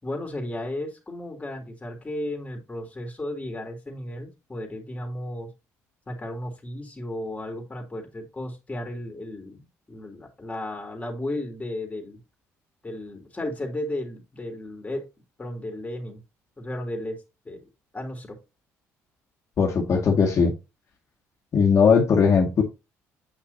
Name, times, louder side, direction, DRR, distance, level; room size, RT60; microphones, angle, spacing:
voice 1, 0.0-5.5 6.1-12.2 12.8-15.1 15.4-16.2 16.6-17.2 17.4-17.6 17.9-18.4, left 1 dB, 20° left, 2 dB, 3.2 m, -34 dB
voice 2, 19.6-20.5 21.5-22.6, left 5 dB, 50° left, 0 dB, 2.1 m, -19 dB
8.4 x 6.1 x 2.8 m, 0.26 s
supercardioid pair, 70°, 6 cm